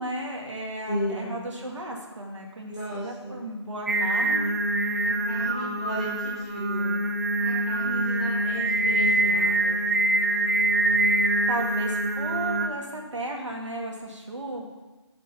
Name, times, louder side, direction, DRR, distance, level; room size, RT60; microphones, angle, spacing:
voice 1, 0.0-4.6 11.5-14.7, right 1 dB, 85° right, 0 dB, 1.9 m, -34 dB
voice 2, 0.9-1.4 2.7-3.4 5.0-6.9 7.4-9.8, equal, ahead, -8 dB, 0.8 m, -34 dB
Singing, 3.9-12.7, right 2 dB, 35° right, 0.5 m, -24 dB
6.6 x 6.1 x 7.0 m, 1.2 s
figure-of-eight pair, 170°, 15 cm